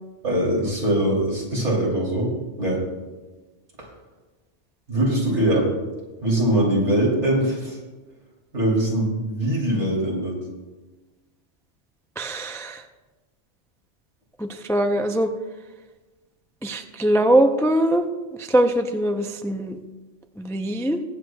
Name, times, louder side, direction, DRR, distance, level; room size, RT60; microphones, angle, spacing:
voice 1, 0.2-2.3 2.6-2.8 3.8-3.9 4.9-5.7 6.2-7.8 8.5-10.4, right 1 dB, 70° right, -3 dB, 3.5 m, -22 dB
voice 2, 12.2-12.8 14.4-15.3 16.6-18.1 18.4-19.8 20.4-21.0, right 1 dB, 5° left, 5 dB, 0.4 m, -22 dB
22.5 x 8.0 x 2.3 m, 1.2 s
omnidirectional pair, 1.2 m